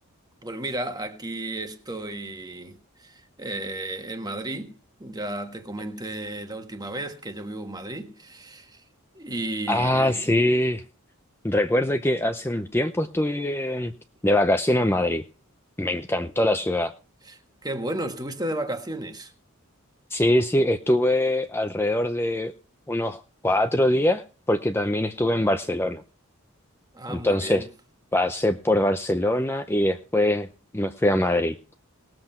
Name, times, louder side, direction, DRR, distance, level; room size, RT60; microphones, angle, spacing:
voice 1, 0.4-8.8 9.1-10.3 17.2-19.3 26.9-27.7, right 1 dB, 20° right, 1.5 m, -33 dB
voice 2, 9.7-10.8 11.4-13.9 14.2-15.2 15.8-16.9 20.1-22.5 22.9-24.2 24.5-26.0 27.1-27.6 28.1-30.5 30.7-31.5, left 1 dB, 10° left, 0.6 m, -23 dB
19.0 x 7.9 x 4.4 m
head